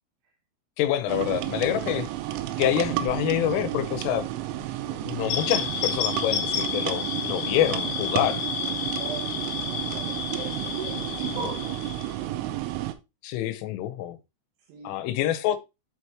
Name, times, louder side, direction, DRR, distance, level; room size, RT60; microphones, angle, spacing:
voice 1, 0.8-2.1 2.6-4.3 4.9-8.4 13.2-14.2 14.8-15.6, left 12 dB, 90° left, 3.3 m, -26 dB
sound 1, 1.1-13.0, right 14 dB, 90° right, 3.3 m, -32 dB
sound 2, 5.3-12.1, left 8 dB, 65° left, 3.5 m, -31 dB
voice 2, 8.9-9.3 9.6-12.5 14.7-15.0, right 6 dB, 70° right, 3.2 m, -39 dB
11.0 x 4.7 x 2.8 m
omnidirectional pair, 5.6 m